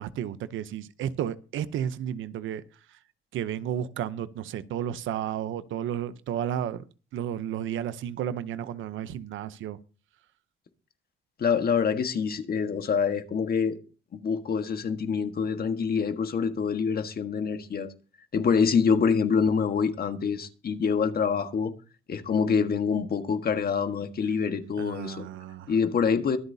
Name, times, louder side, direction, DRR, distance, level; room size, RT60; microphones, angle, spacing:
voice 1, 0.0-2.6 3.3-6.8 7.1-9.8 24.8-25.7, right 10 dB, 80° right, 0.8 m, -32 dB
voice 2, 11.4-13.8 14.1-17.9 18.3-21.7 22.1-25.2 25.7-26.4, left 6 dB, 50° left, 1.6 m, -26 dB
23.5 x 8.0 x 2.8 m
cardioid pair, 90°, 20 cm